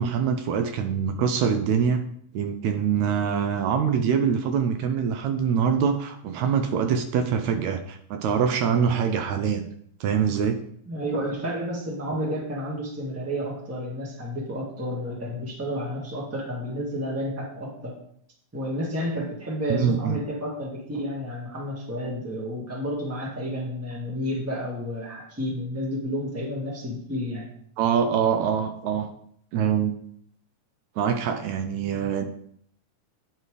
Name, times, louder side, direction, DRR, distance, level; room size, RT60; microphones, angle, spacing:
voice 1, 0.0-2.1 2.3-9.7 10.0-10.6 19.7-20.2 27.8-29.1 29.5-29.9 31.0-32.3, right 7 dB, 75° right, 7 dB, 1.9 m, -24 dB
voice 2, 10.9-17.9 18.5-27.5, equal, 5° right, -3 dB, 1.1 m, -31 dB
9.3 x 4.4 x 4.8 m, 0.66 s
omnidirectional pair, 3.4 m